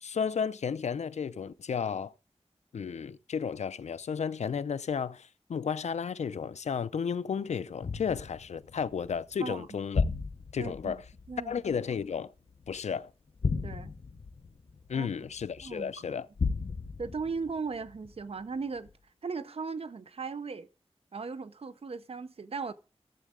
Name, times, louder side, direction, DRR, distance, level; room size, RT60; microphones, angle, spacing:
voice 1, 0.0-2.1 2.7-10.0 10.5-11.0 11.4-12.3 12.7-13.1 14.9-16.3, left 6 dB, 90° left, 0.4 m, -33 dB
sound 1, 7.8-12.8 13.3-15.7 16.3-18.4 18.9-19.0, left 4 dB, 55° left, 0.7 m, -35 dB
voice 2, 10.6-11.0 11.3-11.5 13.6-13.9 14.9-15.1 15.6-16.2 17.0-18.9 19.2-20.7 21.1-22.7, right 4 dB, 60° right, 0.6 m, -37 dB
13.0 x 7.4 x 3.6 m
wide cardioid pair, 100°, 11 cm